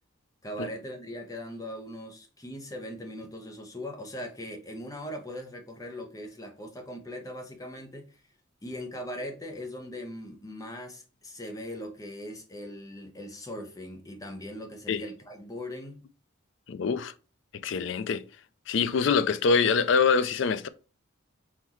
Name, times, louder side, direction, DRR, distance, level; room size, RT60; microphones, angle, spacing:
voice 1, 0.4-8.2 8.6-16.1, equal, 15° left, 0.8 m, -40 dB
voice 2, 16.7-17.1 17.6-18.2 18.7-20.7, left 5 dB, 60° left, 0.4 m, -24 dB
4.2 x 3.9 x 3.0 m
head